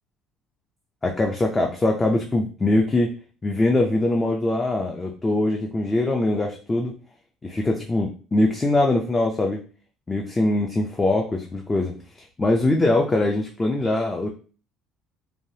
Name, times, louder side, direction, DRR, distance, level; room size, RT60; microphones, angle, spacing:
voice 1, 1.0-3.1 3.4-6.9 7.4-9.6 10.1-14.3, left 2 dB, 15° left, 1 dB, 0.4 m, -22 dB
3.2 x 2.2 x 2.6 m, 0.38 s
cardioid pair, 140°, 0 cm